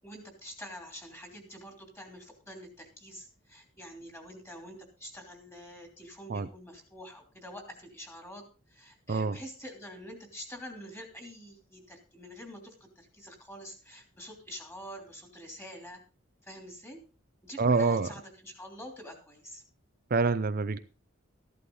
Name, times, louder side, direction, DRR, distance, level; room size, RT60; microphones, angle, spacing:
voice 1, 0.0-16.0 16.4-17.0 17.4-19.6, equal, 10° left, 3 dB, 3.0 m, -46 dB
voice 2, 9.1-9.4 17.6-18.1 20.1-20.8, right 4 dB, 45° right, 11 dB, 0.5 m, -26 dB
14.5 x 11.0 x 3.9 m, 0.33 s
head